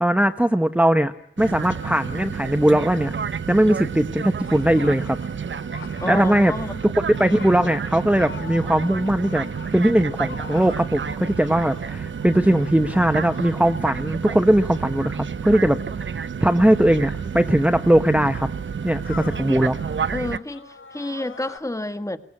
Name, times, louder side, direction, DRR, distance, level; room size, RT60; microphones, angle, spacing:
voice 1, 0.0-1.1 1.4-3.1 3.5-5.2 6.1-6.5 7.2-9.5 9.7-15.8 16.1-18.5 18.8-19.8, right 1 dB, 5° right, 1.0 m, -19 dB
sound 1, 1.4-20.4, right 6 dB, 65° right, 0.8 m, -30 dB
sound 2, 4.4-15.2 16.1-16.2 16.8-21.6, left 5 dB, 70° left, 2.4 m, -44 dB
voice 2, 6.0-6.8 19.3-19.4 20.1-22.2, left 1 dB, 15° left, 1.7 m, -29 dB
23.0 x 19.5 x 8.7 m
wide cardioid pair, 95°, 21 cm